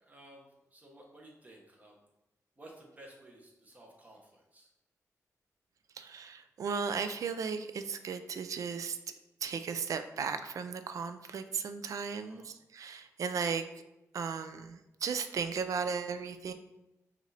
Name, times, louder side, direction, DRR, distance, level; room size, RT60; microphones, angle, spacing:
voice 1, 0.0-2.0 2.6-4.7 12.1-12.5, right 1 dB, 25° right, -1 dB, 1.0 m, -55 dB
voice 2, 5.9-9.0 9.4-13.6 14.1-16.5, right 6 dB, 70° right, 9 dB, 0.3 m, -36 dB
5.2 x 2.6 x 3.3 m, 0.94 s
wide cardioid pair, 115°, 6 cm